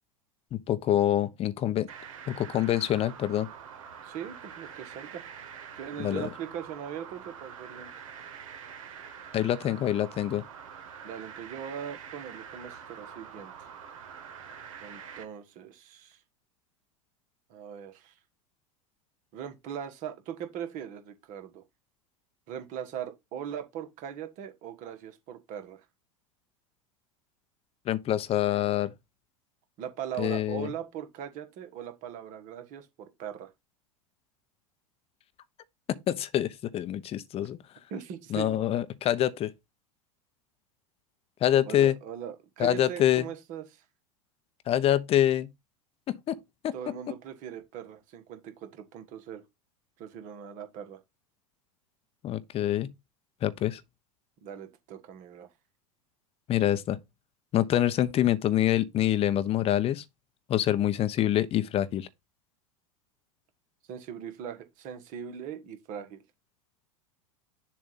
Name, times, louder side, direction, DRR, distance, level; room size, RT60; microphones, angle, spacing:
voice 1, 0.5-1.9 2.3-3.5 6.0-6.3 9.3-10.4 27.9-28.9 30.2-30.7 36.1-37.6 38.3-39.5 41.4-41.9 42.6-43.3 44.7-45.5 46.1-46.4 46.6-46.7 52.2-52.9 53.4-53.8 56.5-57.0 57.5-60.0 60.5-62.1, left 12 dB, 35° left, 0.7 m, -26 dB
sound 1, 1.9-15.2, right 7 dB, 70° right, 1.2 m, -45 dB
voice 2, 4.0-5.2 5.7-7.9 11.0-13.7 14.8-16.2 17.5-18.1 19.3-21.6 22.5-25.9 29.8-33.5 37.9-38.6 41.6-43.8 46.7-49.4 50.0-51.0 54.4-55.5 63.9-66.2, right 9 dB, 50° right, 1.4 m, -40 dB
7.0 x 2.6 x 5.6 m
hypercardioid pair, 85°, 18 cm